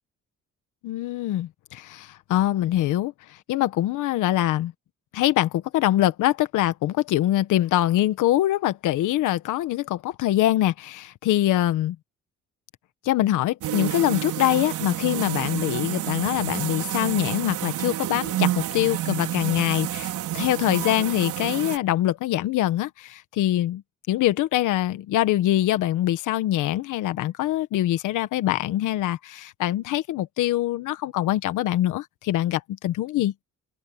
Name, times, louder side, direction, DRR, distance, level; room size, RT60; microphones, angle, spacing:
voice 1, 0.8-3.1 3.5-4.7 5.1-12.0 13.0-23.8 24.1-33.3, left 14 dB, 90° left, 1.4 m, -24 dB
sound 1, 13.6-21.8, right 13 dB, 85° right, 4.8 m, -29 dB
open air
cardioid pair, 90°, 30 cm